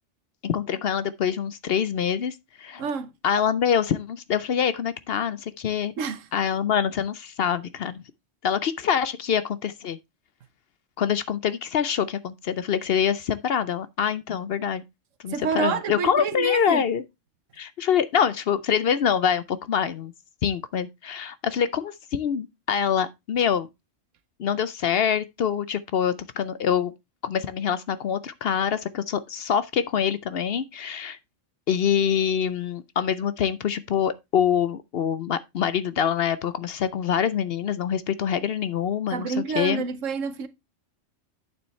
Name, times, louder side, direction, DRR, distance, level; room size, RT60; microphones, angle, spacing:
voice 1, 0.4-2.8 3.2-5.9 6.3-8.0 8.4-10.0 11.0-14.8 15.2-17.0 17.6-20.1 20.4-23.7 24.4-26.9 27.2-31.2 31.7-39.8, left 8 dB, 60° left, 0.7 m, -25 dB
voice 2, 2.8-3.1 6.0-6.3 15.3-16.8 39.1-40.5, right 6 dB, 80° right, 1.3 m, -28 dB
8.7 x 7.1 x 3.1 m
omnidirectional pair, 1.3 m